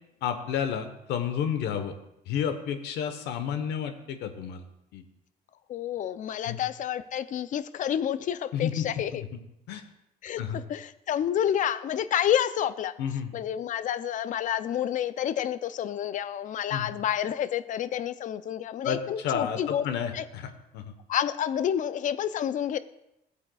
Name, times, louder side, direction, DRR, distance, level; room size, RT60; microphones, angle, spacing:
voice 1, 0.2-1.9 2.3-4.6 4.9-5.0 6.5-6.6 8.5-8.9 9.1-9.3 9.7-9.8 10.4-10.6 13.0-13.3 16.7-16.9 18.8-20.9, left 8 dB, 80° left, 8 dB, 1.1 m, -31 dB
voice 2, 5.7-9.2 10.2-12.9 13.3-19.9 20.1-20.2 21.1-22.8, left 10 dB, 50° left, 14 dB, 0.5 m, -29 dB
16.0 x 8.3 x 2.3 m, 0.85 s
cardioid pair, 110°, 17 cm